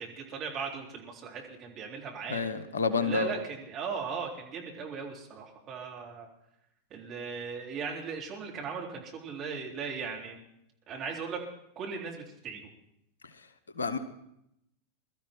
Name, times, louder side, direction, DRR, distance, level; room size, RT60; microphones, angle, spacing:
voice 1, 0.0-2.4 3.0-6.3 6.9-10.4 10.9-11.4 11.8-12.7, right 5 dB, 30° right, -1 dB, 3.8 m, -38 dB
voice 2, 2.3-3.3 13.8-14.0, left 5 dB, 70° left, 12 dB, 1.1 m, -29 dB
22.5 x 13.0 x 4.5 m, 0.79 s
figure-of-eight pair, 90°, 0 cm